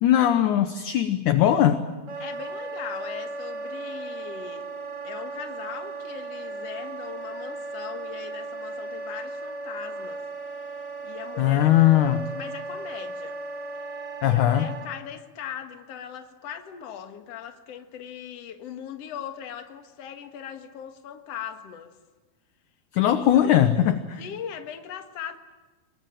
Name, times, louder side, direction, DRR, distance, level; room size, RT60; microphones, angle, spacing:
voice 1, 0.0-1.8 11.4-12.2 14.2-14.7 22.9-24.2, left 11 dB, 70° left, 2.1 m, -20 dB
Wind instrument woodwind instrument, 2.1-14.9, right 3 dB, 40° right, 3.9 m, -36 dB
voice 2, 2.2-4.7 5.0-10.2 11.0-13.4 13.7-13.9 14.2-22.0 23.3-23.7 24.2-25.4, left 9 dB, 50° left, 2.2 m, -39 dB
25.0 x 22.0 x 9.0 m
omnidirectional pair, 4.4 m